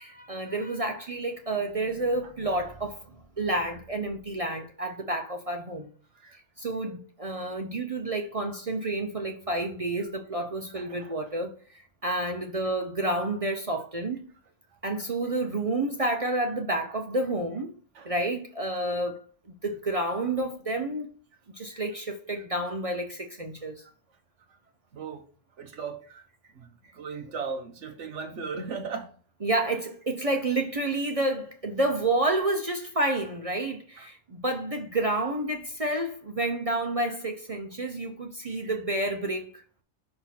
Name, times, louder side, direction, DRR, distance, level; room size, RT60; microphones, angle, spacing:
voice 1, 0.1-3.0 3.4-5.9 6.6-14.3 14.8-17.7 18.0-19.2 19.6-21.1 21.6-23.8 29.4-39.6, right 2 dB, 35° right, 0.5 m, -29 dB
voice 2, 10.7-11.2 17.9-18.1 21.7-21.8 24.9-25.2 25.6-26.2 26.6-29.1 34.0-34.1 38.4-38.6, right 5 dB, 60° right, 1.2 m, -37 dB
5.8 x 4.4 x 4.1 m
omnidirectional pair, 1.5 m